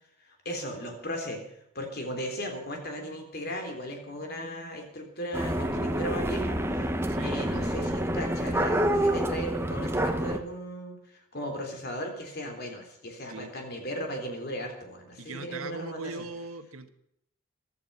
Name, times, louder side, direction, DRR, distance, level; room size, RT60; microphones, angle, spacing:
voice 1, 0.3-6.8 7.2-16.1, equal, 50° left, 4 dB, 3.4 m, -37 dB
sound 1, 5.3-10.4, right 1 dB, 10° right, 1.0 m, -28 dB
voice 2, 7.1-7.4 13.3-13.5 15.2-16.9, right 3 dB, 90° right, 8 dB, 1.4 m, -40 dB
15.5 x 12.5 x 5.6 m, 0.75 s
head